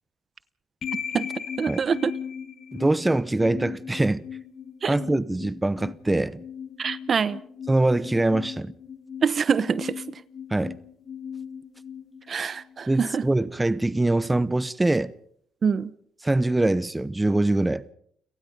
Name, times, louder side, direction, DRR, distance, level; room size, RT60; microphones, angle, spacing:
sound 1, 0.8-12.9, left 7 dB, 60° left, 2.3 m, -38 dB
voice 1, 1.6-2.1 4.8-4.9 6.8-7.4 9.2-10.2 12.3-13.3 15.6-15.9, right 6 dB, 45° right, 1.0 m, -25 dB
voice 2, 2.7-4.2 4.9-6.4 7.7-8.7 10.5-10.8 12.9-15.1 16.2-17.8, right 2 dB, 15° right, 0.8 m, -23 dB
29.5 x 18.0 x 5.5 m
cardioid pair, 90°, 0 cm